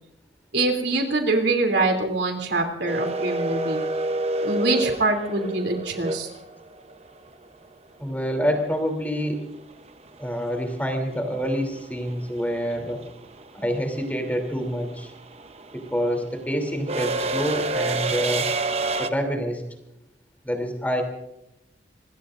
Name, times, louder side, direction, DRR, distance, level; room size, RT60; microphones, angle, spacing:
voice 1, 0.5-3.8 4.4-6.3, right 2 dB, 70° right, 3 dB, 3.0 m, -24 dB
sound 1, 2.9-6.9 9.3-9.4 10.7-11.0 11.3-19.1, right 2 dB, 35° right, 0.8 m, -28 dB
voice 2, 8.0-9.4 10.2-13.0 13.5-15.1 15.7-18.5 19.0-19.6 20.4-21.0, equal, 10° left, 4 dB, 3.0 m, -27 dB
26.0 x 21.0 x 2.6 m, 0.85 s
head